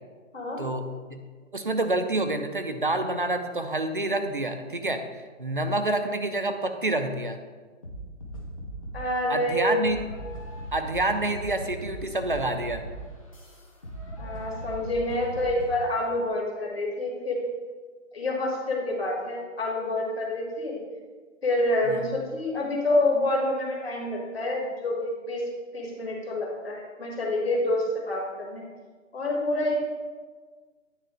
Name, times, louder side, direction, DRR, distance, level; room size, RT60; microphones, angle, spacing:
voice 1, 0.3-0.6 8.9-9.9 14.2-17.4 18.1-20.8 21.4-25.4 25.7-28.7 29.1-29.8, left 1 dB, 50° left, -1 dB, 1.4 m, -27 dB
voice 2, 1.5-7.4 9.3-10.0 10.7-12.8 21.9-22.0, right 2 dB, 40° right, 8 dB, 0.5 m, -28 dB
sound 1, 7.8-9.1 9.8-15.8, right 1 dB, 25° left, 0.8 m, -39 dB
9.3 x 3.8 x 5.0 m, 1.5 s
hypercardioid pair, 180°, 40 cm